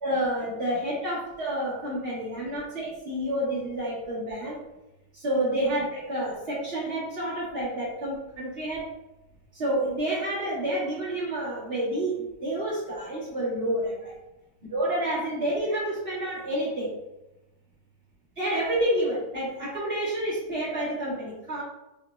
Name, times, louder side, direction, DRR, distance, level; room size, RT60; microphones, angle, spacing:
voice 1, 0.0-4.6 5.1-8.9 9.5-14.1 14.7-16.9 18.4-21.6, right 1 dB, 30° right, -9 dB, 1.4 m, -29 dB
4.2 x 3.7 x 2.3 m, 0.95 s
omnidirectional pair, 2.4 m